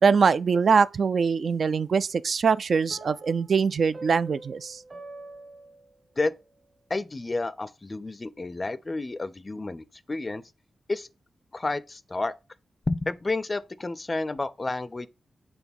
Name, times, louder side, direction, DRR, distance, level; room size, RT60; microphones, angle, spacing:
voice 1, 0.0-4.8, right 5 dB, 55° right, 0.3 m, -23 dB
sound 1, 2.9-6.4, right 2 dB, 40° right, 1.1 m, -45 dB
voice 2, 6.9-10.4 10.9-11.1 11.5-12.3 12.9-15.1, left 2 dB, 25° left, 0.4 m, -30 dB
7.0 x 3.7 x 5.3 m
wide cardioid pair, 160°, 0 cm